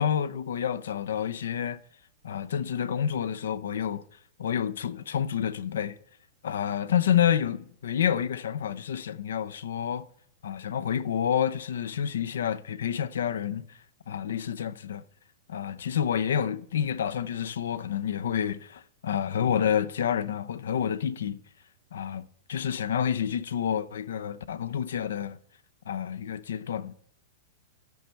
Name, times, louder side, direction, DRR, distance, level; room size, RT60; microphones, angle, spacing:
voice 1, 0.0-1.8 2.2-4.0 4.4-6.0 6.4-10.1 10.4-13.7 14.1-15.0 15.5-21.4 21.9-25.4 25.9-26.9, left 9 dB, 90° left, 0.5 m, -29 dB
13.5 x 4.7 x 4.5 m
supercardioid pair, 165°, 0 cm